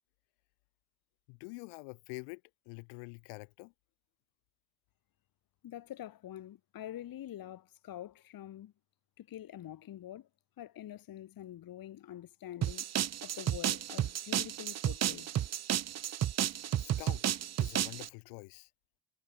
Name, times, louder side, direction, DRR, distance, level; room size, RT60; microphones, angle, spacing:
voice 1, 1.3-3.7 16.8-17.2 17.6-18.7, left 40 dB or more, 65° left, 2.4 m, -46 dB
voice 2, 5.6-8.7 9.2-10.3 10.6-12.9 13.2-15.3, left 12 dB, 45° left, 1.9 m, -46 dB
sound 1, 12.6-18.1, right 11 dB, 30° right, 0.9 m, -32 dB
hypercardioid pair, 60°, 49 cm